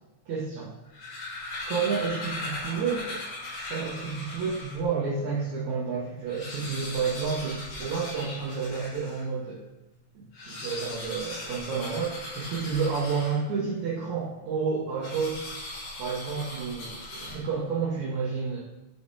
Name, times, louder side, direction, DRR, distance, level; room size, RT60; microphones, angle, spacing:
voice 1, 0.3-0.7 1.7-3.2 3.7-9.6 10.1-15.6 16.0-18.6, right 5 dB, 65° right, -7 dB, 2.8 m, -30 dB
sound 1, 0.7-4.9 5.4-5.5 5.7-5.8 6.2-9.3 10.2-13.7 15.0-17.7, left 2 dB, 60° left, 3.5 m, -38 dB
8.1 x 5.0 x 5.0 m, 1.0 s
omnidirectional pair, 3.7 m